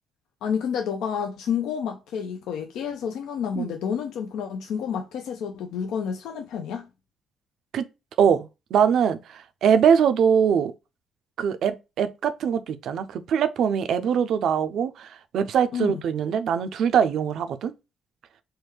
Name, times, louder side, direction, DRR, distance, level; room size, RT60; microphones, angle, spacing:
voice 1, 0.4-6.9 15.7-16.0, left 7 dB, 85° left, 0.4 m, -29 dB
voice 2, 8.2-10.7 11.4-17.7, right 7 dB, 70° right, 0.4 m, -22 dB
3.4 x 2.2 x 3.0 m
cardioid pair, 90°, 0 cm